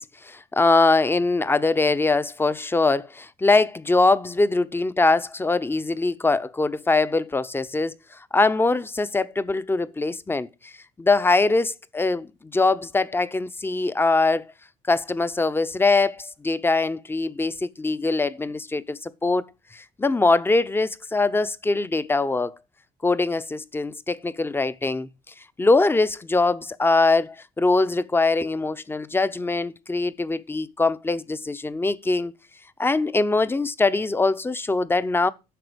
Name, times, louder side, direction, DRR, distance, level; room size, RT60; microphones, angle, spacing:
voice 1, 0.0-7.9 8.3-10.7 11.0-14.4 14.9-19.4 19.7-22.6 23.0-25.1 25.6-32.3 32.8-35.3, left 3 dB, 15° left, 0.6 m, -22 dB
10.5 x 6.7 x 5.1 m
cardioid pair, 110°, 17 cm